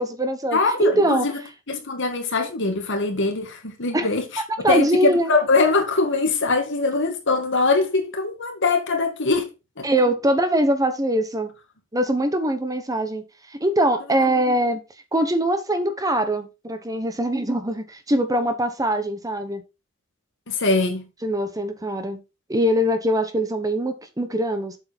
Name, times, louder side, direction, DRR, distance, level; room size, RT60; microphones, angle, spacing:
voice 1, 0.0-1.3 3.9-4.1 4.6-5.3 9.8-11.5 11.9-13.2 13.5-14.8 15.1-19.6 21.2-22.2 22.5-24.8, right 1 dB, 15° right, 1.2 m, -22 dB
voice 2, 0.5-1.4 1.7-4.4 4.7-9.9 20.5-21.1, left 3 dB, 60° left, 2.2 m, -22 dB
8.0 x 6.7 x 4.3 m
head